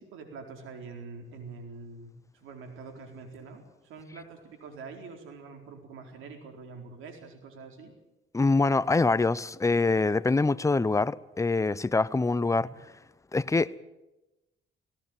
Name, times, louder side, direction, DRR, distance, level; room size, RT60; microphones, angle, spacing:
voice 1, 0.0-3.6 3.9-7.9 12.5-12.7, right 4 dB, 85° right, 4.3 m, -45 dB
voice 2, 8.3-12.7 13.3-13.7, left 3 dB, 15° left, 0.7 m, -24 dB
18.0 x 17.5 x 9.2 m
cardioid pair, 90°, 20 cm